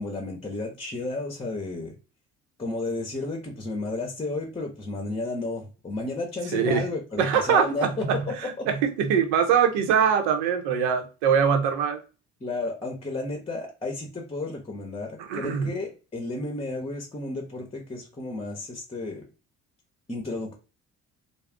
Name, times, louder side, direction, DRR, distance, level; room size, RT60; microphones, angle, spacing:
voice 1, 0.0-2.0 2.6-8.7 12.4-19.3 20.1-20.5, left 2 dB, 15° left, 0.8 m, -32 dB
voice 2, 6.5-6.8 7.2-12.0 15.3-15.7, right 7 dB, 85° right, 0.7 m, -23 dB
2.3 x 2.0 x 3.5 m
supercardioid pair, 70°, 34 cm